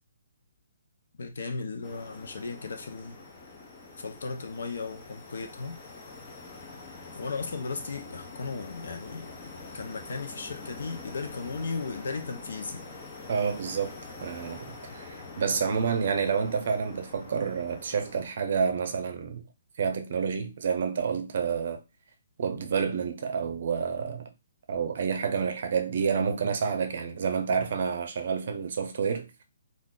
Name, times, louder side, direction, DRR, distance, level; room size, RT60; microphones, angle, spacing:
voice 1, 1.2-3.2 4.0-5.8 7.1-12.8, left 4 dB, 70° left, 0.7 m, -36 dB
sound 1, 1.8-18.3, left 3 dB, 20° left, 0.5 m, -45 dB
voice 2, 13.3-13.9 14.2-19.4 19.8-21.8 22.4-24.3 24.7-29.4, right 6 dB, 50° right, 0.6 m, -29 dB
2.4 x 2.4 x 3.7 m
hypercardioid pair, 170°, 0 cm